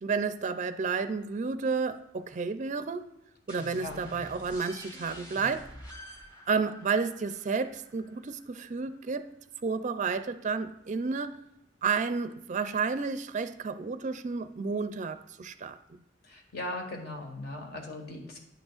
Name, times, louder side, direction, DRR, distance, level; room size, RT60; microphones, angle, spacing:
voice 1, 0.0-3.1 3.5-5.7 6.5-9.3 9.6-11.4 11.8-16.0, right 5 dB, 40° right, 11 dB, 0.4 m, -31 dB
sound 1, 3.5-8.9, equal, 25° left, 2.6 m, -48 dB
voice 2, 16.2-18.5, left 1 dB, 60° left, 2 dB, 1.5 m, -39 dB
10.5 x 6.2 x 2.4 m, 0.89 s
head